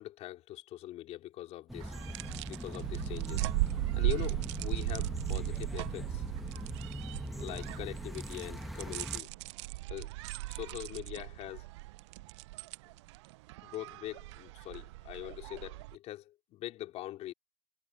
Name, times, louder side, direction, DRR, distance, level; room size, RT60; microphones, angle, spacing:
voice 1, 0.0-2.0 2.4-3.5 3.9-6.2 7.4-9.3 9.9-10.1 10.5-11.7 13.6-17.3, left 14 dB, 30° left, 3.8 m, -43 dB
sound 1, 1.7-9.2, equal, ahead, 1.3 m, -41 dB
sound 2, 1.8-15.9, right 21 dB, 45° right, 0.4 m, -37 dB
hypercardioid pair, 130°, 20 cm